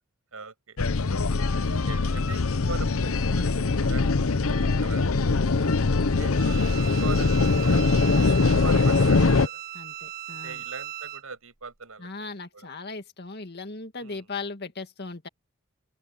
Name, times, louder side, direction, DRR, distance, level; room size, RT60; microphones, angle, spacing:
voice 1, 0.3-1.2 1.8-5.8 6.1-6.6 6.8-9.6 10.3-12.7 14.0-14.3, right 4 dB, 75° right, 6.1 m, -42 dB
sound 1, 0.8-9.5, left 3 dB, 75° left, 0.8 m, -22 dB
Bowed string instrument, 6.3-11.2, right 12 dB, 45° right, 1.5 m, -38 dB
voice 2, 9.7-10.6 12.0-15.3, left 3 dB, 50° left, 2.1 m, -38 dB
open air
head